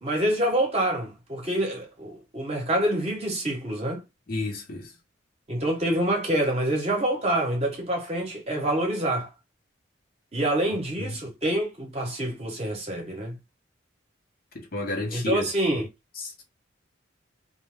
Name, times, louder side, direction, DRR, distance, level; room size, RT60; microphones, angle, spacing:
voice 1, 0.0-4.0 5.5-9.3 10.3-13.4 15.1-15.8, right 1 dB, 30° right, 0.9 m, -26 dB
voice 2, 4.3-4.9 11.0-11.2 14.5-15.4 16.2-16.4, left 3 dB, 50° left, 0.7 m, -31 dB
2.5 x 2.1 x 3.2 m
head